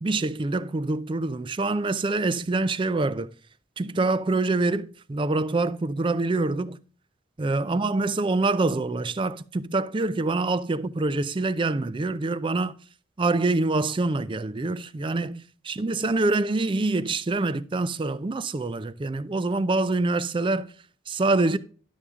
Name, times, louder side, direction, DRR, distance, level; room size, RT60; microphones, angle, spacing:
voice 1, 0.0-3.3 3.8-6.8 7.4-12.8 13.2-20.7 21.1-21.6, right 2 dB, 25° right, 0.4 m, -25 dB
11.0 x 6.9 x 3.6 m
head